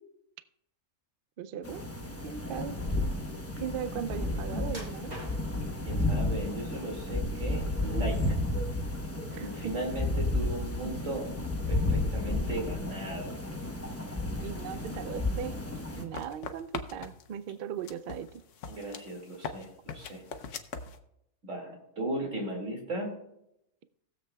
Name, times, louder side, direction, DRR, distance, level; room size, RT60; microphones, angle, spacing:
voice 1, 1.4-1.8 2.2-2.8 3.6-5.1 9.3-9.7 14.4-15.6 15.9-18.3, right 8 dB, 85° right, 12 dB, 0.4 m, -38 dB
sound 1, 1.6-16.0, left 2 dB, 15° left, 0.7 m, -32 dB
sound 2, 4.7-5.7 6.4-7.1 7.5-8.4 8.7-8.9 9.4-9.5, right 1 dB, 30° right, 1.6 m, -47 dB
voice 2, 5.9-8.4 9.3-11.3 11.7-13.3 18.7-19.7 19.9-20.2 21.4-23.1, right 1 dB, 60° right, 0 dB, 2.7 m, -36 dB
sound 3, 15.9-17.4 17.8-21.0, left 5 dB, 60° left, 1.0 m, -41 dB
19.5 x 7.4 x 2.3 m, 0.80 s
omnidirectional pair, 1.5 m